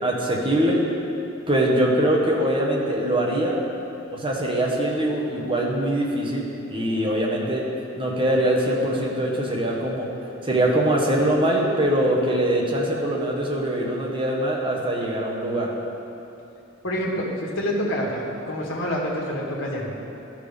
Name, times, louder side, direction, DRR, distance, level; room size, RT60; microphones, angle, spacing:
voice 1, 0.0-0.8 1.5-3.6 4.1-7.6 8.0-10.1 10.4-15.7, right 1 dB, 25° right, -3 dB, 1.2 m, -23 dB
voice 2, 16.8-19.9, equal, 70° left, -3 dB, 1.7 m, -27 dB
12.5 x 6.0 x 3.5 m, 2.8 s
head